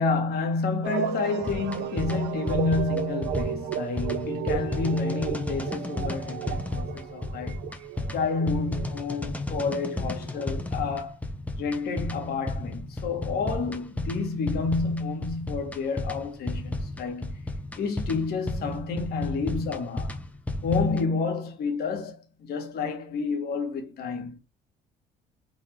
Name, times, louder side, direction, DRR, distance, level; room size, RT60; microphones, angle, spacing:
voice 1, 0.0-7.6 8.1-11.2 11.6-17.4 17.8-20.2 20.6-24.4, left 4 dB, 65° left, 1.2 m, -29 dB
sound 1, 0.8-10.8, right 9 dB, 85° right, 0.5 m, -34 dB
sound 2, 1.4-21.1, left 1 dB, 10° left, 0.5 m, -33 dB
3.9 x 2.4 x 3.2 m
cardioid pair, 110°, 17 cm